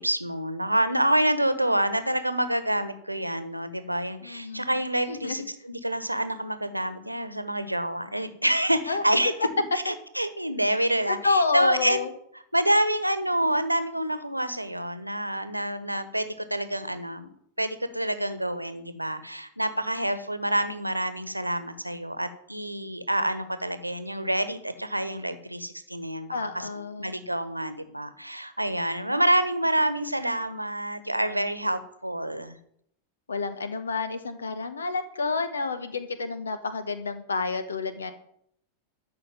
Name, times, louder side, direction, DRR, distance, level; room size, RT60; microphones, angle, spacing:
voice 1, 0.0-9.3 9.7-12.0 12.5-17.3 17.6-26.7 27.0-32.6, right 1 dB, 85° right, 12 dB, 1.2 m, -27 dB
voice 2, 4.2-4.7 5.1-5.4 8.9-9.0 9.9-10.0 11.1-12.1 26.3-27.2 33.3-38.1, left 4 dB, 70° left, 11 dB, 1.3 m, -29 dB
13.0 x 6.4 x 9.0 m, 0.68 s
figure-of-eight pair, 90°, 0 cm